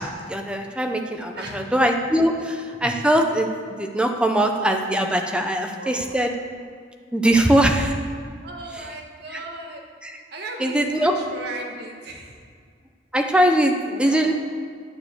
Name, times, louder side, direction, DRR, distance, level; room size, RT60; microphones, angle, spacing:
voice 1, 0.0-6.3 7.1-8.0 8.7-8.9 9.3-9.4 10.0-10.2 10.6-11.2 13.1-14.3, right 1 dB, 5° right, 3 dB, 0.7 m, -21 dB
voice 2, 1.3-1.7 2.3-2.4 5.8-6.1 8.4-9.8 10.3-12.4 13.8-14.3, right 2 dB, 60° right, 1 dB, 1.6 m, -36 dB
9.9 x 6.8 x 6.7 m, 2.1 s
head